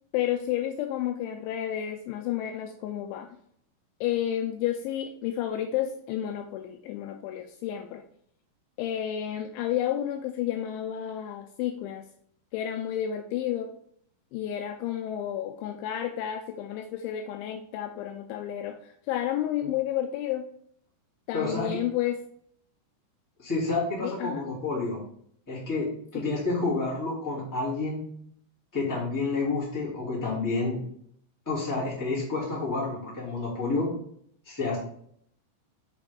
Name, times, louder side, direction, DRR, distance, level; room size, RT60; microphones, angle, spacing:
voice 1, 0.1-3.3 4.0-8.0 8.8-12.1 12.5-13.7 14.3-20.5 21.3-22.2 24.0-24.4 26.1-26.3, left 11 dB, 85° left, 6 dB, 2.8 m, -31 dB
voice 2, 21.3-21.8 23.4-25.0 25.5-25.9 26.1-28.0 28.7-30.8 31.4-33.9 34.4-34.8, left 3 dB, 5° left, -6 dB, 1.9 m, -29 dB
6.4 x 6.1 x 3.8 m, 0.65 s
omnidirectional pair, 5.6 m